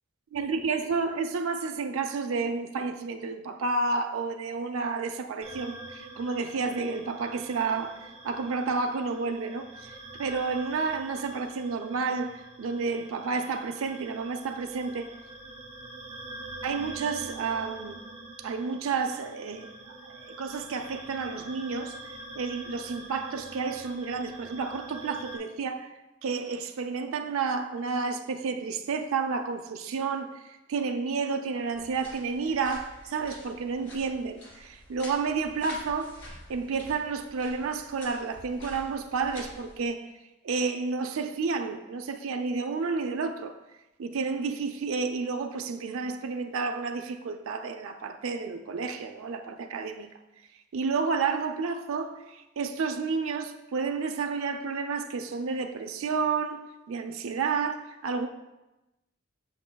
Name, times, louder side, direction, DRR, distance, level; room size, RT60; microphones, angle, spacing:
voice 1, 0.3-9.9 10.2-15.1 16.6-18.0 18.4-19.7 20.0-21.9 22.4-25.9 26.2-40.1 40.4-43.5 44.0-50.1 50.7-58.3, right 4 dB, 85° right, 0.4 m, -31 dB
sound 1, 5.4-25.4, right 2 dB, 30° right, 0.8 m, -45 dB
sound 2, 31.7-39.9, left 1 dB, 65° left, 2.0 m, -48 dB
7.8 x 6.1 x 2.2 m
head